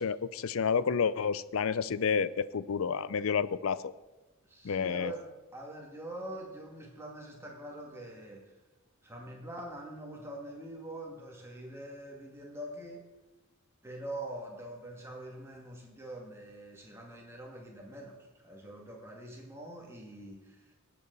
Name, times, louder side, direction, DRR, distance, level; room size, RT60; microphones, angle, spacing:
voice 1, 0.0-3.9 4.6-5.1, left 6 dB, 70° left, 18 dB, 0.5 m, -30 dB
voice 2, 4.4-8.6 9.0-13.0 13.8-20.7, right 1 dB, 10° right, -1 dB, 2.2 m, -44 dB
18.5 x 8.3 x 4.1 m, 1.1 s
head